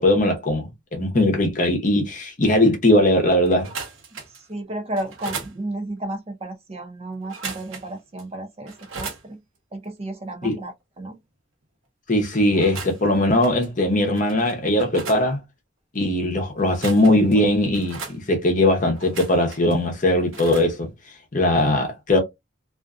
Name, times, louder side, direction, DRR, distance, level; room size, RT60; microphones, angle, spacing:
voice 1, 0.0-3.7 10.4-10.6 12.1-15.4 15.9-20.9 21.3-22.2, left 1 dB, 40° left, 0.7 m, -20 dB
sound 1, 3.5-4.5 4.9-5.5 7.2-7.9 8.2-8.3 8.7-9.2 12.5-13.1 13.4-13.7 14.1-15.2 16.6-17.3 17.7-18.2 18.9-19.7 20.3-20.7, right 5 dB, 85° right, 0.8 m, -36 dB
voice 2, 4.5-9.4 9.7-11.2, right 1 dB, 30° right, 0.5 m, -33 dB
2.5 x 2.5 x 2.3 m
head